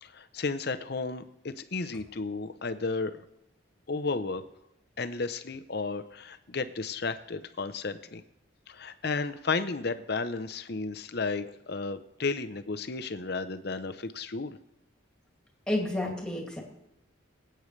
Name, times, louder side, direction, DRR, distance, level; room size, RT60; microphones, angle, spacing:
voice 1, 0.0-3.2 3.9-4.4 5.0-8.2 8.7-14.6, left 4 dB, 50° left, 11 dB, 0.7 m, -33 dB
voice 2, 15.7-16.6, left 1 dB, 5° left, 0 dB, 2.2 m, -30 dB
22.5 x 8.9 x 3.3 m, 0.90 s
head